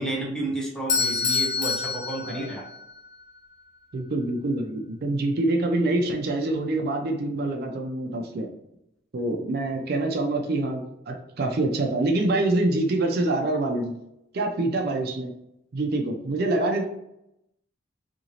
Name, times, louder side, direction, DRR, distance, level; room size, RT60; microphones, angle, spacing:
voice 1, 0.0-2.6, right 1 dB, 5° left, -3 dB, 0.7 m, -31 dB
Bell / Doorbell, 0.9-3.0, left 5 dB, 40° left, 0.6 m, -26 dB
voice 2, 3.9-8.5 9.1-13.9 14.3-15.3 15.7-16.8, right 2 dB, 55° right, 3 dB, 0.4 m, -25 dB
2.8 x 2.6 x 2.8 m, 0.83 s
head